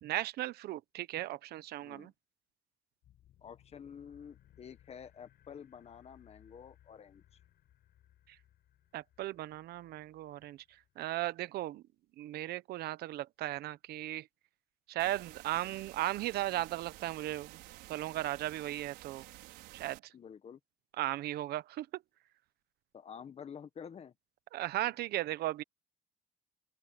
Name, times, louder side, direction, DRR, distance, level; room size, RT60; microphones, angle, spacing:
voice 1, 0.0-2.1 8.3-8.4 8.9-10.6 11.0-11.8 12.2-14.3 14.9-17.6 17.9-19.2 19.7-20.1 21.0-22.0 24.5-25.6, right 15 dB, 70° right, 1.1 m, -36 dB
voice 2, 1.8-2.1 3.4-7.2 15.5-15.8 20.1-20.6 22.9-24.1, left 7 dB, 40° left, 1.5 m, -49 dB
sound 1, 3.0-11.1, left 12 dB, 65° left, 5.3 m, -65 dB
sound 2, 15.0-20.0, right 18 dB, 85° right, 5.4 m, -52 dB
open air
cardioid pair, 105°, 17 cm